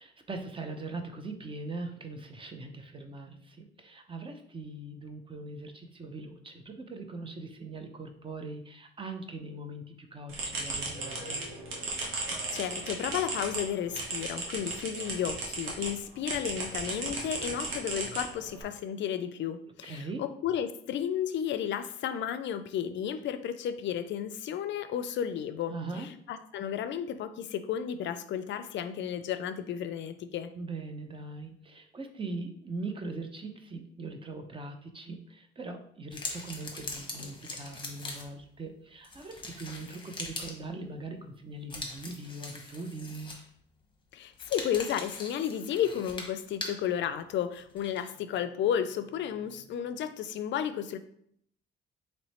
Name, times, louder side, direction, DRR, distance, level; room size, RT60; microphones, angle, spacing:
voice 1, 0.0-11.5 19.8-20.2 25.7-26.1 30.6-43.4, right 3 dB, 25° right, 5 dB, 0.6 m, -41 dB
sound 1, 10.3-15.9 16.2-18.6, right 3 dB, 90° right, 1.1 m, -36 dB
voice 2, 12.3-30.5 44.1-51.0, left 9 dB, 65° left, 11 dB, 0.4 m, -33 dB
sound 2, 36.1-38.4 39.0-40.6 41.7-43.6 44.3-46.8 47.8-48.0, left 3 dB, 25° left, 1.0 m, -41 dB
3.1 x 3.0 x 4.2 m, 0.68 s
cardioid pair, 90°, 20 cm